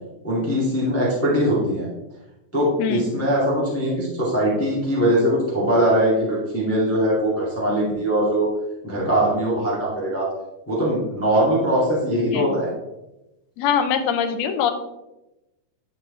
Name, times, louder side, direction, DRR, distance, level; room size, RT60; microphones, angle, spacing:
voice 1, 0.2-1.9 2.5-8.5 8.8-10.3 10.7-12.7, equal, 5° left, -6 dB, 1.6 m, -21 dB
voice 2, 13.6-14.7, left 7 dB, 75° left, 7 dB, 1.6 m, -22 dB
10.5 x 4.9 x 3.3 m, 0.95 s
omnidirectional pair, 3.5 m